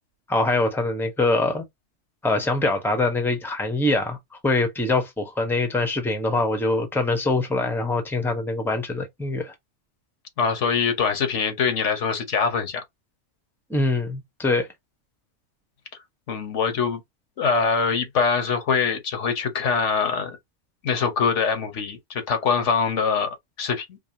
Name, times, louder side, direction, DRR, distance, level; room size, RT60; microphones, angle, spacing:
voice 1, 0.3-1.6 2.2-4.2 4.4-9.5 13.7-14.7, left 2 dB, ahead, 0.9 m, -23 dB
voice 2, 10.4-12.8 16.3-17.0 17.4-20.4 20.8-24.0, left 5 dB, 75° left, 1.3 m, -23 dB
5.0 x 2.3 x 2.8 m
omnidirectional pair, 1.2 m